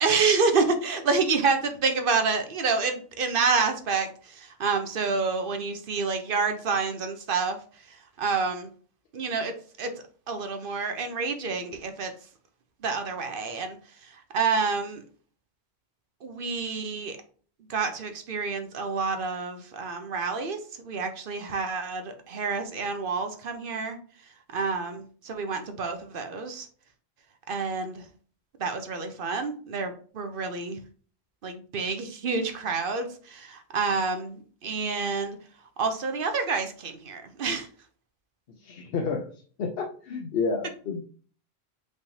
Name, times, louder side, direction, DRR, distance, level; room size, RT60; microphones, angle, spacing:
voice 1, 0.0-7.6 7.9-8.7 9.1-9.9 10.3-12.1 12.8-13.8 14.3-15.0 16.2-17.2 17.7-24.0 24.5-26.7 27.5-28.0 28.6-30.8 31.4-35.4 35.8-37.7, right 4 dB, 60° right, 7 dB, 0.8 m, -28 dB
voice 2, 38.5-41.0, left 4 dB, 65° left, 2 dB, 0.8 m, -31 dB
5.2 x 3.4 x 2.7 m, 0.43 s
omnidirectional pair, 1.1 m